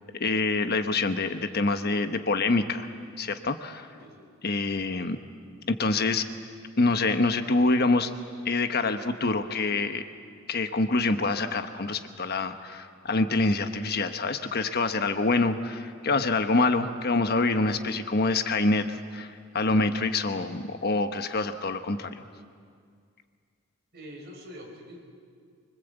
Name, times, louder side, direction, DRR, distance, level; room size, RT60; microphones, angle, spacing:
voice 1, 0.2-2.9 3.2-3.9 4.4-5.2 5.7-6.2 6.8-8.1 8.4-10.0 10.5-22.1, left 3 dB, 50° left, 8 dB, 1.1 m, -26 dB
voice 2, 23.9-25.0, equal, 55° right, 1 dB, 5.0 m, -44 dB
25.0 x 24.5 x 8.1 m, 2.1 s
head